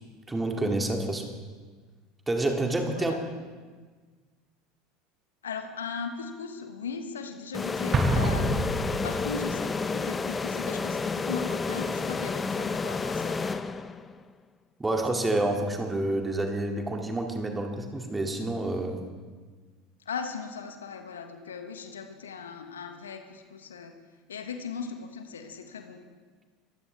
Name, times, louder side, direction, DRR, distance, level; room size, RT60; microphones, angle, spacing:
voice 1, 0.3-1.2 2.3-3.1 14.8-19.0, right 2 dB, 15° right, 2 dB, 2.5 m, -28 dB
voice 2, 5.4-8.7 9.0-13.4 20.0-23.9 24.3-26.0, left 5 dB, 75° left, 6 dB, 1.5 m, -38 dB
sound 1, 7.5-14.2, left 4 dB, 20° left, 0.8 m, -30 dB
Explosion, 7.9-9.6, right 1 dB, 30° right, 1.9 m, -27 dB
22.5 x 15.5 x 3.5 m, 1.4 s
figure-of-eight pair, 75°, 0 cm